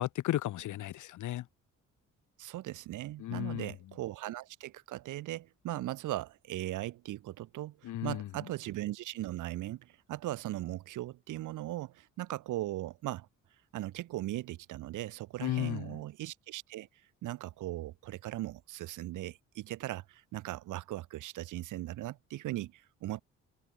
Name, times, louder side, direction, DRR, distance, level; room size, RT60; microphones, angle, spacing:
voice 1, 0.0-1.4 3.2-3.7 7.8-8.3 15.4-16.0, left 14 dB, 75° left, 1.4 m, -34 dB
voice 2, 2.4-13.3 13.7-16.9 17.2-23.2, right 15 dB, 90° right, 3.3 m, -39 dB
cardioid pair, 90°, 30 cm